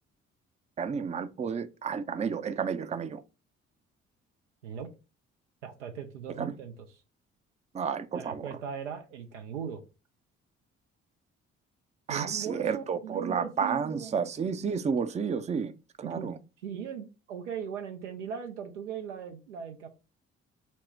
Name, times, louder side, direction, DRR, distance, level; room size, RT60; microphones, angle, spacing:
voice 1, 0.8-3.2 6.4-6.6 7.7-8.6 12.1-15.7 16.0-16.4, right 6 dB, 20° right, 0.5 m, -31 dB
voice 2, 5.6-6.8 8.1-9.8 12.1-14.2 16.0-16.3 16.6-19.9, right 7 dB, 85° right, 0.7 m, -39 dB
4.3 x 2.1 x 4.5 m
figure-of-eight pair, 45°, 35 cm